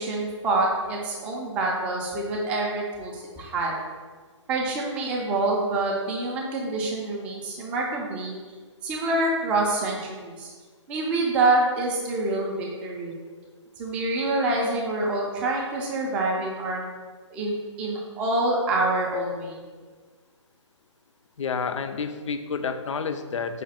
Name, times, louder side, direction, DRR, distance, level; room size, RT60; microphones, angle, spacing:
voice 1, 0.0-3.7 4.5-8.4 8.8-10.5 10.9-13.2 13.8-16.9 17.3-19.6, right 2 dB, 10° right, -2 dB, 0.3 m, -26 dB
voice 2, 21.4-23.6, left 5 dB, 75° left, 9 dB, 0.4 m, -29 dB
4.9 x 2.2 x 4.1 m, 1.5 s
hypercardioid pair, 150°, 16 cm